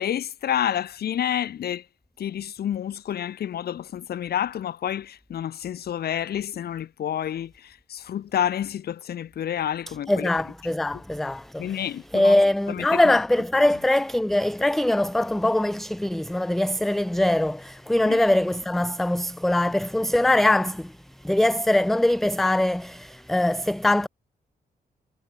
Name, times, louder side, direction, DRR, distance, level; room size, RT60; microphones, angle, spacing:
voice 1, 0.0-1.8 2.2-10.3 11.6-12.4 12.7-13.0 18.1-18.2, left 10 dB, 70° left, 2.4 m, -29 dB
voice 2, 9.9-24.1, left 1 dB, ahead, 0.4 m, -22 dB
wide cardioid pair, 160°, 17 cm